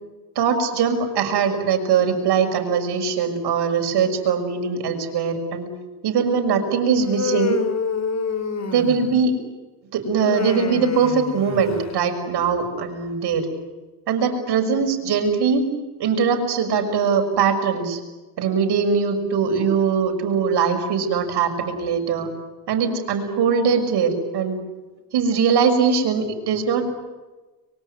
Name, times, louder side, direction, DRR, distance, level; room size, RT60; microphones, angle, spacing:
voice 1, 0.4-5.7 6.0-7.6 8.7-9.3 9.9-13.5 14.1-15.6 16.0-18.0 18.4-22.3 22.7-24.6 25.1-26.8, right 6 dB, 65° right, 4 dB, 6.2 m, -21 dB
Human voice, 7.0-9.3 10.2-12.0, left 5 dB, 40° left, 3.8 m, -28 dB
24.5 x 23.5 x 9.5 m, 1.2 s
supercardioid pair, 70°, 42 cm